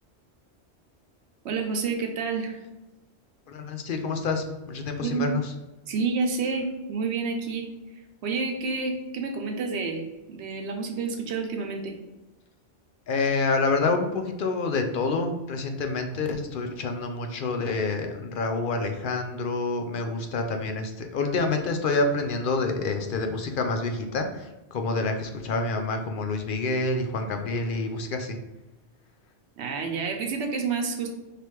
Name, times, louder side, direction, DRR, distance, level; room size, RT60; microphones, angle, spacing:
voice 1, 1.4-2.6 5.0-5.3 5.9-7.7 8.2-10.0 10.3-12.0 29.6-31.1, right 4 dB, 80° right, 3 dB, 1.0 m, -29 dB
voice 2, 3.5-5.5 13.1-28.4, left 3 dB, 60° left, 5 dB, 0.6 m, -27 dB
4.9 x 3.0 x 3.0 m, 1.0 s
omnidirectional pair, 1.1 m